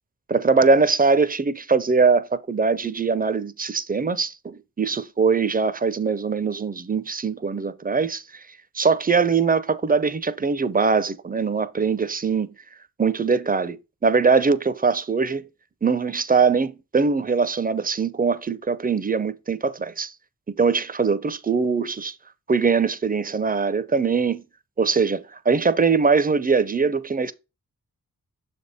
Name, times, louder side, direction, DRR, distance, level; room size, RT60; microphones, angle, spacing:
voice 1, 0.3-8.4 8.7-12.5 13.0-15.5 15.8-20.1 20.5-22.1 22.5-24.4 24.8-27.3, right 5 dB, 25° right, 0.4 m, -22 dB
6.8 x 3.5 x 4.0 m
wide cardioid pair, 90°, 37 cm